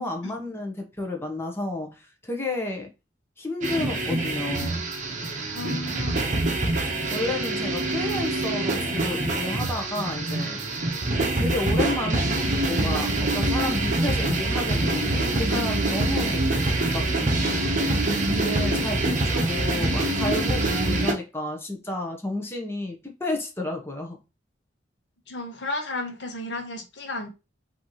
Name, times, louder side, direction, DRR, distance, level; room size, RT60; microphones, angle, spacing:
voice 1, 0.0-2.9 3.4-4.8 7.1-10.6 11.2-12.3 12.6-16.5 16.9-17.1 17.5-24.2, left 2 dB, 15° left, 0.9 m, -31 dB
sound 1, 3.6-21.1, right 2 dB, 45° right, 0.9 m, -25 dB
voice 2, 5.5-6.2 25.3-27.3, left 2 dB, 70° left, 1.0 m, -33 dB
5.1 x 2.8 x 3.0 m
head